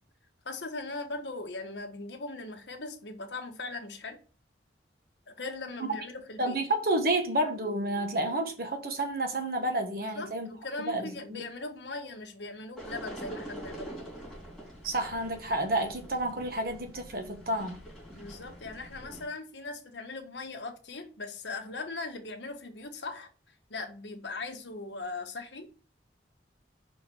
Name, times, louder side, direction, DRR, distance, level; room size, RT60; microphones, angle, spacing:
voice 1, 0.4-4.2 5.3-6.6 10.0-14.0 18.1-25.7, left 3 dB, 80° left, 1.4 m, -39 dB
voice 2, 6.4-10.5 10.8-11.4 14.8-17.8, right 1 dB, 55° right, 1.5 m, -30 dB
sound 1, 12.8-19.2, right 1 dB, ahead, 3.9 m, -45 dB
5.5 x 4.6 x 6.3 m
head